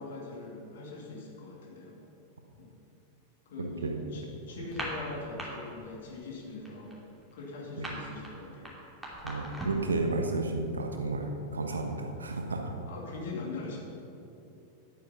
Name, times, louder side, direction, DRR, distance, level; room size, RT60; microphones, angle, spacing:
voice 1, 0.0-2.0 2.6-2.7 3.5-7.0 7.3-8.8 12.9-13.8, left 3 dB, 60° left, -1 dB, 2.4 m, -42 dB
voice 2, 3.6-4.0 7.8-7.9 9.2-12.7, right 3 dB, 75° right, 4 dB, 1.2 m, -32 dB
sound 1, 4.6-5.5 5.8-6.1 6.4-9.9, right 1 dB, 5° right, 2.7 m, -40 dB
11.0 x 8.8 x 5.6 m, 2.8 s
figure-of-eight pair, 90°, 0 cm